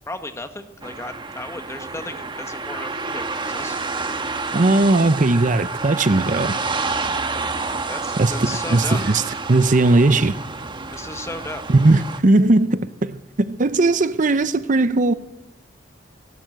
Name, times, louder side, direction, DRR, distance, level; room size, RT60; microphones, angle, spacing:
voice 1, 0.1-4.0 7.9-9.0 10.9-11.6, left 2 dB, 15° left, 1.5 m, -34 dB
sound 1, 0.8-12.2, right 3 dB, 25° right, 1.3 m, -29 dB
voice 2, 4.5-6.5 8.2-9.2 9.5-10.3 11.7-15.1, right 2 dB, 45° right, 0.7 m, -18 dB
18.5 x 18.0 x 7.9 m
head